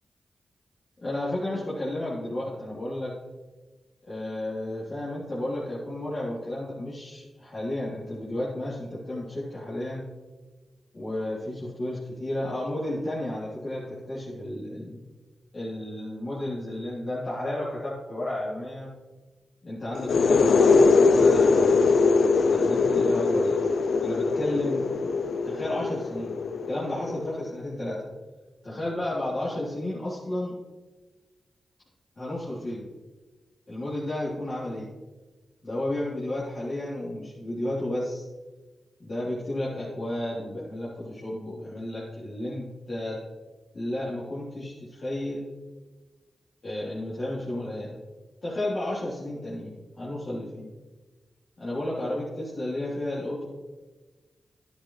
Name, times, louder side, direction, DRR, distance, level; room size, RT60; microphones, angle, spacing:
voice 1, 1.0-3.2 4.1-10.0 10.9-15.0 15.5-18.9 19.6-22.0 22.5-23.6 24.0-25.1 25.4-26.3 26.7-28.1 28.6-30.5 32.2-32.9 33.7-34.9 35.6-38.3 39.0-43.2 43.7-45.5 46.6-48.0 48.4-50.7 51.6-53.5, left 1 dB, 55° left, -10 dB, 3.5 m, -32 dB
sound 1, 19.9-27.5, left 4 dB, 75° left, 0.5 m, -22 dB
11.0 x 10.5 x 3.3 m, 1.3 s
supercardioid pair, 40°, 0 cm